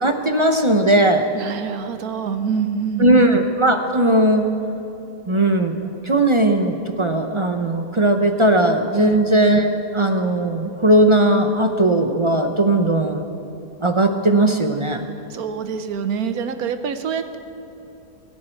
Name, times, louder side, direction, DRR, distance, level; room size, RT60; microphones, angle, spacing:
voice 1, 0.0-1.3 3.0-4.4 5.3-5.7 6.0-13.2 13.8-15.0, right 1 dB, 40° right, 6 dB, 0.4 m, -18 dB
voice 2, 1.3-3.2 9.0-9.2 15.3-17.4, right 7 dB, 70° right, 10 dB, 1.3 m, -25 dB
23.5 x 11.0 x 4.5 m, 2.9 s
omnidirectional pair, 1.6 m